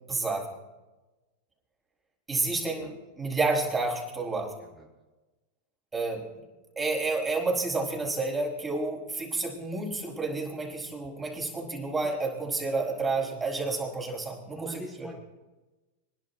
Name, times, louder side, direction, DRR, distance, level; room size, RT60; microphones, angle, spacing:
voice 1, 0.1-0.5 2.3-4.5 5.9-6.2 6.7-15.1, right 3 dB, 15° right, -1 dB, 5.2 m, -30 dB
voice 2, 14.5-15.1, equal, ahead, -5 dB, 3.1 m, -42 dB
27.0 x 11.0 x 2.9 m, 1.1 s
hypercardioid pair, 105°, 0 cm